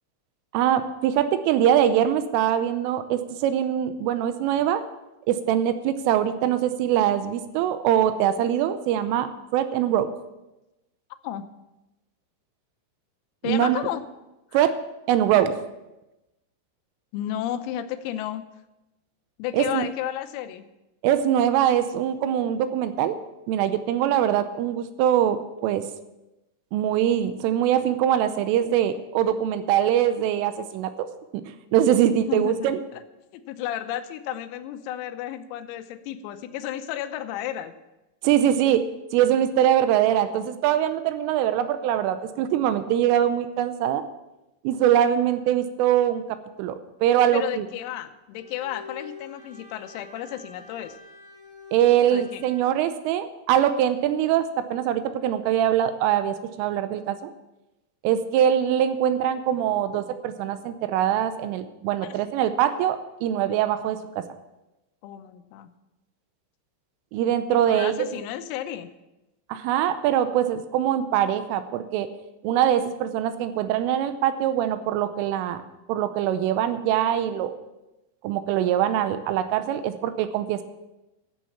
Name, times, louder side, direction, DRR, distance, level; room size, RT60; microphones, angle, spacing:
voice 1, 0.5-4.8 5.3-10.1 13.4-13.8 14.5-14.7 15.1-15.5 19.5-19.9 21.0-23.1 23.5-25.8 26.7-31.1 31.7-32.8 38.2-38.8 39.1-44.0 44.6-46.8 47.0-47.6 51.7-57.3 58.0-64.2 67.1-67.9 69.5-72.1 72.4-75.6 75.9-77.5 78.2-80.6, right 10 dB, 80° right, 10 dB, 3.1 m, -23 dB
voice 2, 13.4-14.0 14.5-14.7 17.1-18.5 19.4-20.7 32.0-33.0 33.3-37.7 47.3-51.0 52.1-52.4 62.0-62.2 65.0-65.7 67.5-68.9, left 11 dB, 90° left, 9 dB, 3.6 m, -33 dB
Bowed string instrument, 48.3-52.8, left 3 dB, 10° right, 1.8 m, -46 dB
13.0 x 7.3 x 7.2 m, 0.98 s
omnidirectional pair, 6.0 m